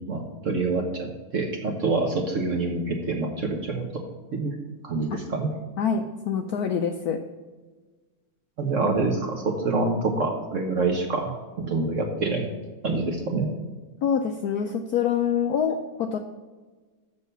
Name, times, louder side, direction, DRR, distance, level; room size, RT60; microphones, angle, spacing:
voice 1, 0.1-4.0 4.3-4.5 4.8-5.5 8.6-12.5 12.8-13.5, right 3 dB, 50° right, 3 dB, 1.0 m, -26 dB
voice 2, 5.8-7.2 14.0-16.2, left 7 dB, 75° left, 5 dB, 0.8 m, -25 dB
6.9 x 6.4 x 6.6 m, 1.3 s
omnidirectional pair, 2.3 m